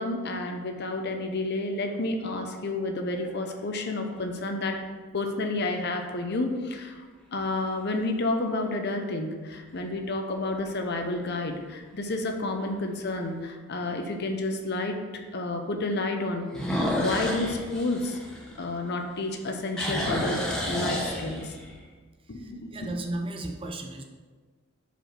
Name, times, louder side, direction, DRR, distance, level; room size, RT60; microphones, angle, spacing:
voice 1, 0.0-4.8 5.1-7.0 7.3-15.0 15.3-18.2 18.6-20.4 20.7-21.6 22.3-22.9, left 2 dB, 50° left, 4 dB, 0.7 m, -30 dB
sound 1, 2.8-3.5 4.2-4.3 9.5-10.0 10.4-10.5 11.1-11.2 11.5-11.6 13.1-13.2 16.5-19.0 19.4-21.7, equal, 5° left, 0.9 m, -30 dB
voice 2, 22.4-24.0, right 2 dB, 25° right, 2 dB, 0.5 m, -35 dB
5.1 x 4.8 x 5.9 m, 1.4 s
head